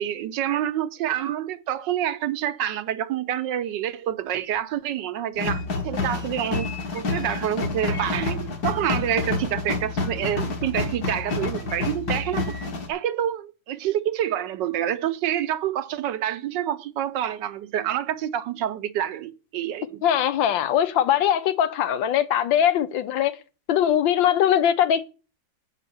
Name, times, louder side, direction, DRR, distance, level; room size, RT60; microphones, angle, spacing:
voice 1, 0.0-6.7 6.9-12.6 12.9-20.0, right 11 dB, 75° right, 1.4 m, -27 dB
sound 1, 5.4-12.9, left 3 dB, 55° left, 2.0 m, -28 dB
voice 2, 20.0-23.3 23.7-25.0, left 10 dB, 85° left, 1.5 m, -21 dB
8.2 x 5.6 x 7.0 m
omnidirectional pair, 2.0 m